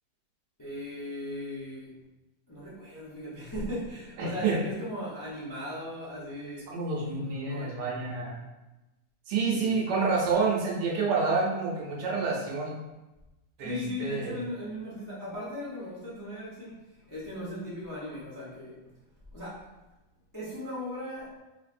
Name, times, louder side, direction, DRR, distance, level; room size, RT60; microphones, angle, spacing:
voice 1, 0.6-1.9 2.5-6.7 7.1-7.8 9.5-9.7 13.6-18.8 19.3-19.7 20.3-21.4, left 1 dB, 30° left, -8 dB, 0.3 m, -38 dB
voice 2, 4.2-4.6 6.7-8.4 9.3-12.8 13.6-14.3, right 4 dB, 70° right, -2 dB, 1.3 m, -28 dB
3.4 x 3.2 x 2.5 m, 1.0 s
omnidirectional pair, 1.9 m